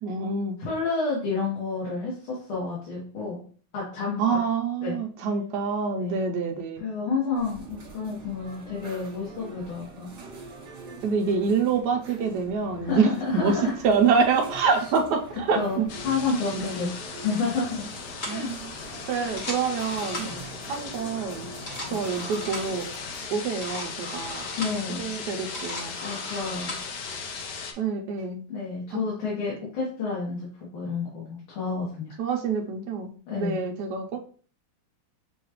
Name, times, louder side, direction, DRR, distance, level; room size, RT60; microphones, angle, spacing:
voice 1, 0.0-0.6 4.2-6.8 11.0-13.5 13.8-15.9 16.5-16.9 18.3-18.7 19.1-20.3 20.7-21.5 21.8-22.9 23.3-24.4 25.0-25.9 27.8-28.4 28.9-29.0 32.2-33.1 33.4-34.2, right 5 dB, 75° right, 2 dB, 1.0 m, -26 dB
voice 2, 0.6-3.4 3.7-4.2 4.8-5.0 5.9-6.2 6.8-10.1 12.8-13.8 14.6-14.9 15.5-17.8 18.2-18.5 18.8-19.0 20.2-20.4 21.9-22.0 24.6-25.0 26.0-26.8 28.5-32.1 33.3-33.6, left 4 dB, 90° left, -7 dB, 2.2 m, -30 dB
sound 1, 7.3-23.3, right 3 dB, 45° right, 1.6 m, -44 dB
sound 2, 15.9-27.7, left 5 dB, 70° left, 1.0 m, -38 dB
sound 3, 18.2-18.5 19.2-20.5 21.4-22.8 23.4-24.9 25.3-26.9, left 1 dB, 40° left, 1.2 m, -37 dB
6.7 x 2.4 x 2.9 m, 0.42 s
omnidirectional pair, 2.3 m